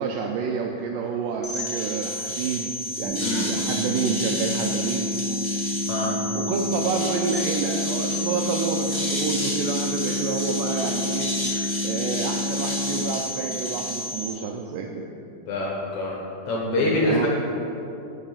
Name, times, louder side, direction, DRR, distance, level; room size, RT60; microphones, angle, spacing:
voice 1, 0.0-5.1 6.4-11.3 11.8-15.0 17.0-17.3, right 5 dB, 85° right, 1 dB, 1.9 m, -28 dB
sound 1, 1.4-14.3, left 1 dB, 35° left, 0.5 m, -30 dB
sound 2, 3.0-13.0, left 1 dB, 55° right, 2.6 m, -30 dB
voice 2, 5.9-6.2 11.5-11.7 15.5-16.2 16.5-17.3, left 2 dB, 70° left, -3 dB, 2.0 m, -25 dB
8.8 x 5.5 x 5.6 m, 2.7 s
omnidirectional pair, 4.3 m